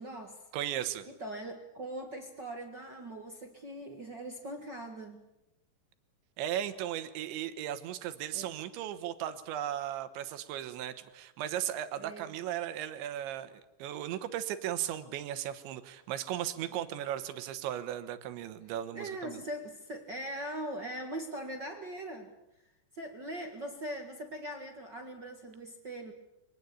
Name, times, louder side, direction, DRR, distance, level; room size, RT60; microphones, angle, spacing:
voice 1, 0.0-0.4 1.2-5.2 8.3-8.5 12.0-12.3 16.7-16.8 18.9-22.3 22.9-26.1, right 1 dB, 60° right, 3 dB, 1.1 m, -41 dB
voice 2, 0.5-1.1 6.4-19.4, right 11 dB, 85° right, 11 dB, 3.5 m, -36 dB
24.0 x 19.5 x 8.4 m, 0.88 s
omnidirectional pair, 5.2 m